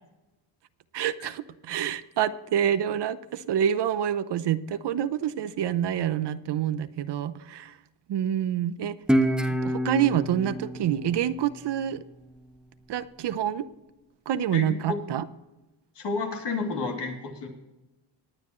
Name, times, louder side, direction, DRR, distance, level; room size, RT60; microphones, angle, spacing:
voice 1, 0.9-7.8 8.1-9.0 9.5-12.0 12.9-13.7 14.3-15.2, right 10 dB, 60° right, 13 dB, 0.8 m, -27 dB
Guitar, 9.1-12.3, equal, ahead, 0.7 m, -28 dB
voice 2, 14.5-15.0 15.9-17.5, left 4 dB, 60° left, 1 dB, 2.9 m, -31 dB
19.0 x 9.8 x 3.1 m, 1.0 s
cardioid pair, 110°, 47 cm